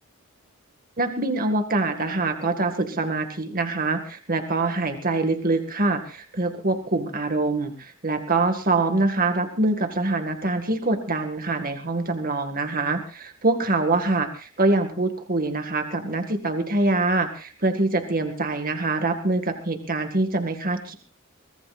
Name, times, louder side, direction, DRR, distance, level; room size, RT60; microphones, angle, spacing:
voice 1, 1.0-20.9, right 2 dB, 40° right, 6 dB, 2.0 m, -24 dB
23.5 x 19.5 x 2.5 m, 0.36 s
head